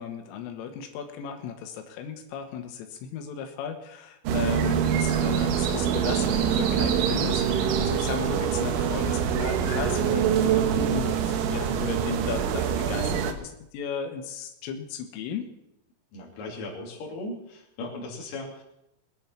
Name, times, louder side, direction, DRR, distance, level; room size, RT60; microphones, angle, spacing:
voice 1, 0.0-15.5, left 7 dB, 90° left, 5 dB, 3.8 m, -35 dB
sound 1, 4.3-13.3, right 8 dB, 75° right, 3.3 m, -25 dB
voice 2, 16.1-18.6, left 2 dB, 50° left, -1 dB, 3.8 m, -37 dB
22.0 x 9.7 x 4.4 m, 0.82 s
omnidirectional pair, 5.6 m